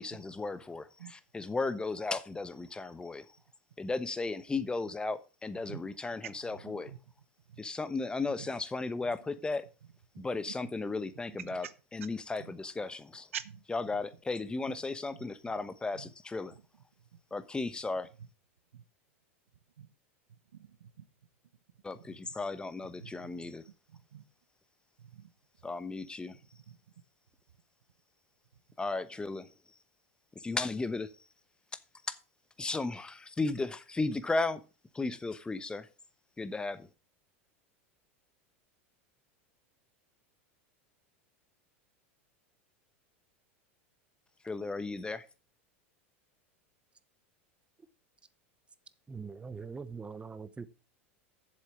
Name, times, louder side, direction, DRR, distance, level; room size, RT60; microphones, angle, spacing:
voice 1, 0.0-3.2 3.8-6.9 7.6-9.7 10.2-11.7 11.9-13.3 13.7-16.5 17.3-18.1 21.8-23.6 25.6-26.4 28.8-29.5 30.3-31.1 32.1-32.2 32.6-34.6 34.9-35.9 36.4-36.9 44.4-45.3, left 3 dB, 15° left, 1.0 m, -35 dB
voice 2, 6.6-7.0 7.5-7.6 8.4-8.5 9.0-9.1 10.1-10.2 10.6-10.9 11.3-11.7 12.4-12.5 13.3-14.0 14.7-14.8 15.1-15.5 15.9-16.1 18.7-18.8 19.8-19.9 20.6-21.0 21.9-22.2 23.0-23.5 23.9-24.2 25.0-25.3 26.3-26.4 26.7-26.8, right 10 dB, 85° right, 0.8 m, -47 dB
voice 3, 49.1-50.7, right 5 dB, 15° right, 0.9 m, -42 dB
7.6 x 7.3 x 6.1 m
hypercardioid pair, 100°, 7 cm